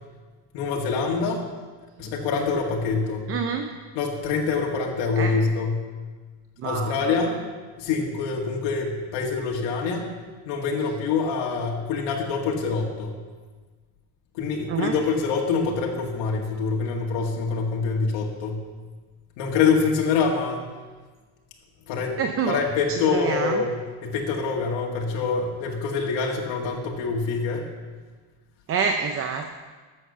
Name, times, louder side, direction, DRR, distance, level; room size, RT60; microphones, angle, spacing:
voice 1, 0.5-1.4 2.0-3.3 3.9-5.8 6.6-7.3 7.8-10.1 10.5-13.2 14.3-18.7 19.4-20.7 21.9-22.2 22.5-27.7, left 5 dB, 80° left, -1 dB, 2.1 m, -25 dB
voice 2, 3.3-3.7 5.2-5.3 6.6-7.1 14.7-14.9 22.2-22.6 23.1-23.6 28.7-29.6, right 6 dB, 30° right, 5 dB, 0.6 m, -27 dB
12.5 x 7.5 x 6.7 m, 1.4 s
cardioid pair, 170°, 44 cm